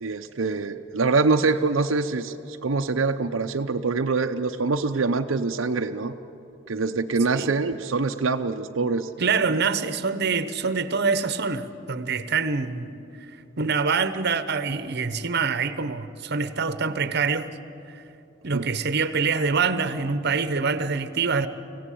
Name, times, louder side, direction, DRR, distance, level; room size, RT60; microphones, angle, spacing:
voice 1, 0.0-6.1 6.7-9.1 9.4-9.5 18.5-18.6, right 4 dB, 90° right, 5 dB, 0.7 m, -24 dB
voice 2, 9.2-12.9 13.6-17.6 17.9-18.0 18.4-21.5, right 5 dB, 55° right, 12 dB, 0.9 m, -25 dB
25.0 x 16.5 x 8.5 m, 2.9 s
head